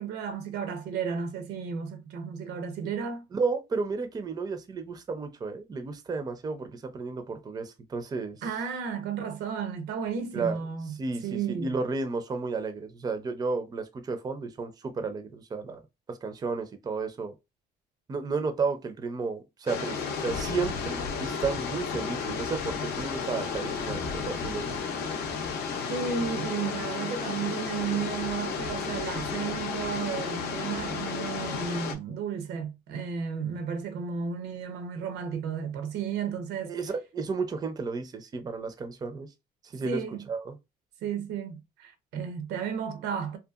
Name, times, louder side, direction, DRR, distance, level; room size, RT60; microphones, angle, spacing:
voice 1, 0.0-3.3 8.4-11.0 11.2-11.8 25.9-36.7 39.8-40.2 41.0-43.4, right 6 dB, 80° right, 0.6 m, -33 dB
voice 2, 3.3-8.4 10.3-10.6 11.0-15.8 16.1-17.3 18.1-25.0 36.6-39.3 39.7-40.0 40.3-40.6, right 4 dB, 25° right, 0.4 m, -32 dB
sound 1, 19.7-31.9, left 5 dB, 75° left, 0.5 m, -33 dB
2.7 x 2.2 x 2.3 m
cardioid pair, 110°, 17 cm